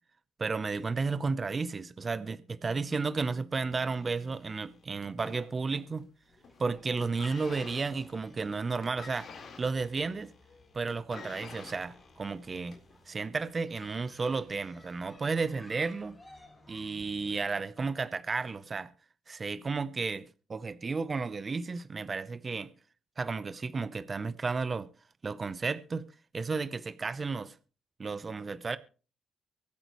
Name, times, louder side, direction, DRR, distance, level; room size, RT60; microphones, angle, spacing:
voice 1, 0.4-6.1 6.6-9.3 9.6-10.3 10.7-12.8 13.1-16.2 16.7-18.9 19.3-20.2 20.5-22.7 23.2-24.9 25.2-26.0 26.3-27.5 28.0-28.8, right 4 dB, 35° right, 0.7 m, -33 dB
sound 1, 3.7-6.0 6.3-6.7 7.0-13.0 13.8-13.9, left 4 dB, 55° left, 4.1 m, -49 dB
sound 2, 6.3-17.4, left 2 dB, 10° left, 6.5 m, -58 dB
24.0 x 8.7 x 3.1 m
cardioid pair, 90°, 0 cm